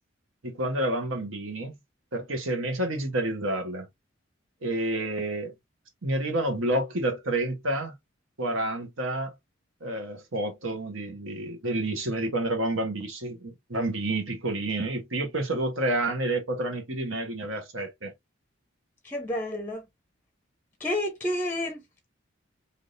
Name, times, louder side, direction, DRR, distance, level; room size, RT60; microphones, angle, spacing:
voice 1, 0.4-1.7 2.1-3.9 4.6-5.5 6.0-7.9 8.4-9.3 9.8-18.1, right 1 dB, 80° right, 1.3 m, -29 dB
voice 2, 19.0-19.8 20.8-22.1, left 1 dB, 10° left, 0.5 m, -30 dB
3.5 x 2.8 x 2.6 m
head